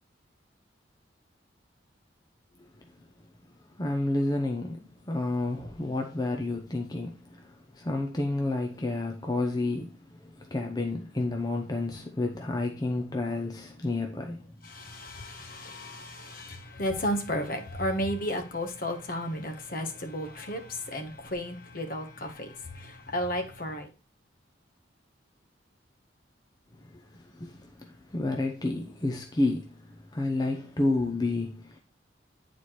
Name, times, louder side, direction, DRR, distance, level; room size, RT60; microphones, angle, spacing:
voice 1, 3.8-14.6 26.8-31.8, left 2 dB, 20° left, 0.6 m, -30 dB
voice 2, 14.7-23.9, equal, 50° left, 1.1 m, -33 dB
9.4 x 4.2 x 3.1 m
head